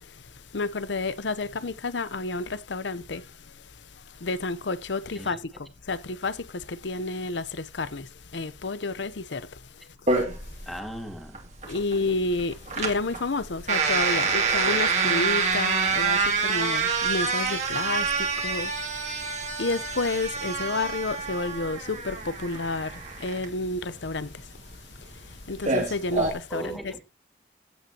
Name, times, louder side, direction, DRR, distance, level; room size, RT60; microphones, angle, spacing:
voice 1, 0.5-3.2 4.2-5.4 5.9-9.5 11.7-18.7 19.6-24.3 25.5-26.7, left 3 dB, 75° left, 0.8 m, -30 dB
voice 2, 5.1-5.6 10.7-11.4 26.5-27.0, equal, ahead, 2.3 m, -37 dB
sound 1, 10.1-26.3, right 4 dB, 40° right, 2.5 m, -27 dB
15.5 x 9.1 x 2.9 m
head